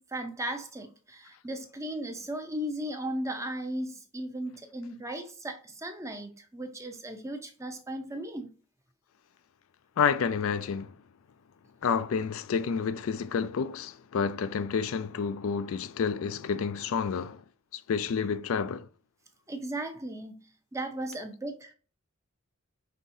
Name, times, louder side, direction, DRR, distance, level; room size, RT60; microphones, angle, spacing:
voice 1, 0.0-8.5 19.5-20.4 20.7-21.7, right 1 dB, 15° right, 0.6 m, -36 dB
voice 2, 10.0-10.9 11.8-17.4 17.7-18.9, left 6 dB, 70° left, 0.4 m, -29 dB
5.6 x 3.5 x 2.6 m
head